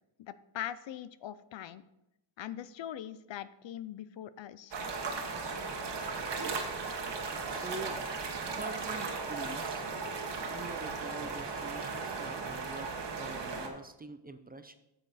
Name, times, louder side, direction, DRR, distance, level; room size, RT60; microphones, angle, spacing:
voice 1, 0.2-1.8 2.4-4.8, left 11 dB, 75° left, 15 dB, 0.6 m, -41 dB
sound 1, 4.7-13.7, right 4 dB, 65° right, 1.4 m, -36 dB
voice 2, 7.5-8.0 8.6-9.9 10.5-12.9 13.2-14.8, right 3 dB, 20° right, 9 dB, 0.4 m, -45 dB
8.9 x 6.8 x 4.1 m, 0.89 s
wide cardioid pair, 140°, 45 cm